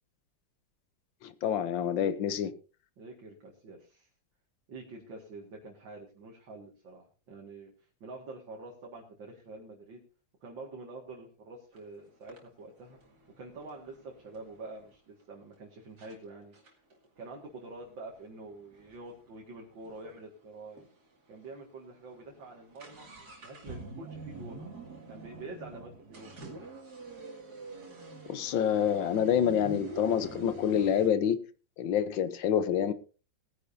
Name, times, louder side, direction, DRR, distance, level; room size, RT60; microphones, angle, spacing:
voice 1, 1.2-2.5 28.3-31.4 31.8-32.9, left 9 dB, 80° left, 1.7 m, -27 dB
voice 2, 3.0-4.1 4.7-7.7 8.0-10.0 10.4-13.0 13.4-16.5 17.2-20.9 21.3-23.1 23.4-24.7 25.1-26.3, right 2 dB, 75° right, 2.7 m, -46 dB
sound 1, 11.7-11.8 12.3-14.9 15.5-15.6 16.0-16.2 16.5-20.2 20.5-20.6 20.8-20.9 21.5-21.6 21.9-31.1, right 2 dB, 55° right, 3.0 m, -46 dB
20.0 x 10.0 x 2.7 m
omnidirectional pair, 2.1 m